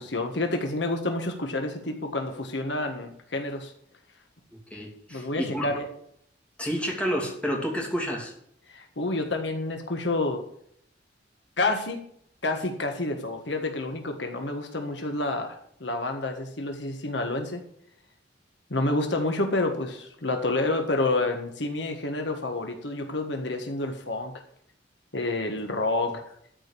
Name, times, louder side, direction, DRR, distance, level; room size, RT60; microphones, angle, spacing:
voice 1, 0.0-3.7 5.1-5.9 8.7-10.4 11.6-12.0 12.4-17.6 18.7-24.3 25.1-26.2, left 2 dB, 65° left, 4 dB, 1.5 m, -29 dB
voice 2, 4.7-5.8 6.6-8.3 26.0-26.1, equal, 5° left, -2 dB, 2.9 m, -30 dB
13.0 x 5.2 x 8.5 m, 0.68 s
head